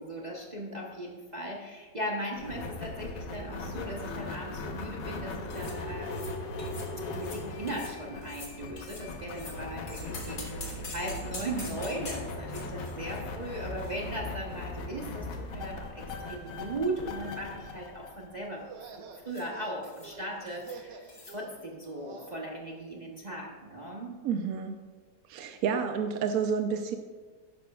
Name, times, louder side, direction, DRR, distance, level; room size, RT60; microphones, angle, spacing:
voice 1, 0.0-6.3 7.1-24.1, right 1 dB, 30° right, -3 dB, 0.9 m, -38 dB
sound 1, 2.3-18.8, left 2 dB, 75° left, 1.6 m, -39 dB
sound 2, 5.5-5.8 6.1-6.3 6.6-6.9 7.1-7.4 7.7-8.0 8.2-9.6 9.9-14.6 14.8-14.9 15.7-16.6 16.9-17.1 17.4-17.8 19.3-19.5 19.8-20.2 20.5-20.8 21.1-21.4, left 2 dB, 60° left, 2.2 m, -46 dB
sound 3, 18.5-22.4, right 5 dB, 85° right, 1.6 m, -48 dB
voice 2, 24.2-24.8 25.3-27.0, right 6 dB, 65° right, 5 dB, 1.0 m, -29 dB
11.5 x 9.7 x 2.3 m, 1.5 s
omnidirectional pair, 1.9 m